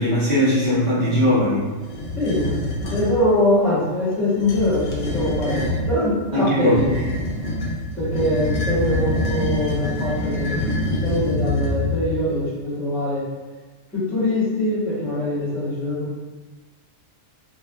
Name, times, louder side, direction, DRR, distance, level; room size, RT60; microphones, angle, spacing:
voice 1, 0.0-1.7 6.3-6.8, equal, 45° right, -9 dB, 1.0 m, -19 dB
sound 1, 1.9-3.1 4.3-5.9 6.7-12.2, left 1 dB, 75° left, 1.0 m, -25 dB
voice 2, 2.2-7.1 7.9-10.5 10.9-13.2 13.9-16.2, left 1 dB, ahead, -12 dB, 1.3 m, -23 dB
2.8 x 2.3 x 3.5 m, 1.3 s
omnidirectional pair, 1.4 m